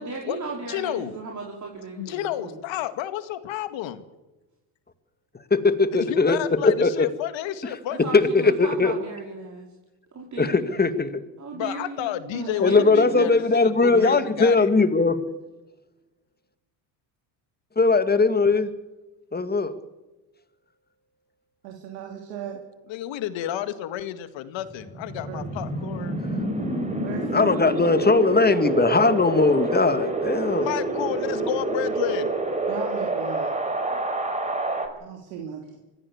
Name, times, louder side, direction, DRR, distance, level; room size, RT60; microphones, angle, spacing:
voice 1, 0.0-2.6 7.9-9.7 10.1-10.8 11.4-12.4 12.7-13.4 13.8-14.6, right 3 dB, 35° right, -1 dB, 5.2 m, -36 dB
voice 2, 0.7-1.1 2.0-4.0 6.1-8.1 11.5-14.7 22.9-26.1 30.5-32.3, left 11 dB, 65° left, 11 dB, 2.2 m, -31 dB
voice 3, 5.5-6.4 6.6-7.1 8.1-8.9 10.4-11.2 12.6-15.2 17.8-18.7 19.3-19.7 27.3-30.7, left 3 dB, 20° left, 11 dB, 2.2 m, -20 dB
voice 4, 12.3-12.7 21.6-22.6 25.3-25.5 27.0-27.5 32.7-33.5 33.9-34.0 35.0-35.8, right 8 dB, 85° right, 3 dB, 3.2 m, -37 dB
Wind, 24.7-34.9, right 2 dB, 15° right, 5.0 m, -27 dB
24.5 x 16.0 x 7.3 m, 1.1 s
supercardioid pair, 80°, 49 cm